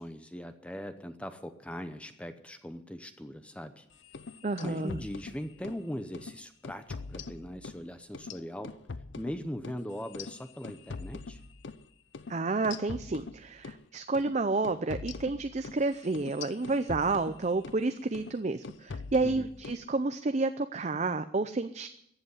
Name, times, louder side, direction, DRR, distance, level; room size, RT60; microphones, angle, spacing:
voice 1, 0.0-3.9 4.6-8.7 9.2-11.4 19.2-19.5, equal, 5° left, 9 dB, 0.7 m, -40 dB
sound 1, 4.0-5.8 6.1-6.3 6.6-7.8 8.1-11.8 12.1-12.3 12.6-13.8 14.1-14.3 14.6-17.8 18.1-18.4 18.6-19.8, left 4 dB, 75° left, 0.6 m, -43 dB
voice 2, 4.4-5.0 12.3-21.9, right 3 dB, 35° right, 10 dB, 0.5 m, -30 dB
14.5 x 8.1 x 9.8 m, 0.76 s
head